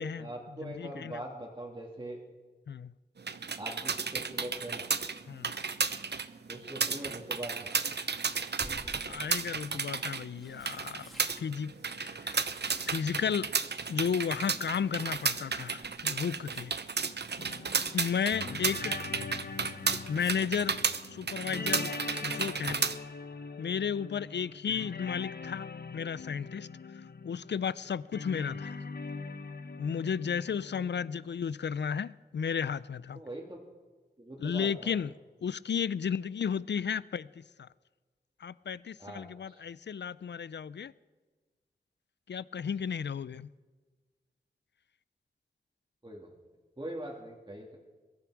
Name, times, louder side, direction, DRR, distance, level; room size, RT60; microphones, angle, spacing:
voice 1, 0.0-2.2 3.6-4.9 6.5-7.8 33.2-33.6 34.2-35.1 39.0-39.6 46.0-46.3 46.8-47.8, right 1 dB, 25° right, 2.1 m, -42 dB
voice 2, 0.6-1.2 2.7-2.9 5.3-5.5 9.0-11.1 11.4-12.5 12.9-13.5 13.9-16.8 17.9-18.9 20.1-20.8 21.1-21.9 22.2-22.9 23.6-28.8 29.8-33.2 34.4-35.1 35.4-37.7 38.4-40.9 42.3-43.5, left 7 dB, 85° left, 0.4 m, -34 dB
sound 1, 3.2-23.0, right 5 dB, 70° right, 0.7 m, -33 dB
Tearing, 8.6-9.3 10.1-14.6 14.9-19.2 19.5-20.4 22.2-22.5 22.8-22.9, equal, ahead, 2.6 m, -54 dB
sound 2, 17.4-31.5, left 4 dB, 65° left, 0.9 m, -42 dB
22.5 x 12.5 x 4.7 m
wide cardioid pair, 75°, 18 cm